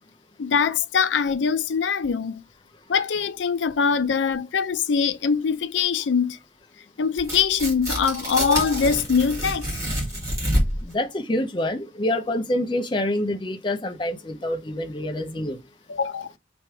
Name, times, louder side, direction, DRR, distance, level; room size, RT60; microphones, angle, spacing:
voice 1, 0.4-2.4 2.9-6.4 7.0-9.7 15.9-16.3, left 6 dB, 90° left, 0.5 m, -23 dB
Tearing, 7.2-10.9, equal, 15° right, 1.8 m, -27 dB
voice 2, 10.8-15.6, left 1 dB, 25° left, 0.6 m, -26 dB
3.2 x 3.0 x 4.5 m
head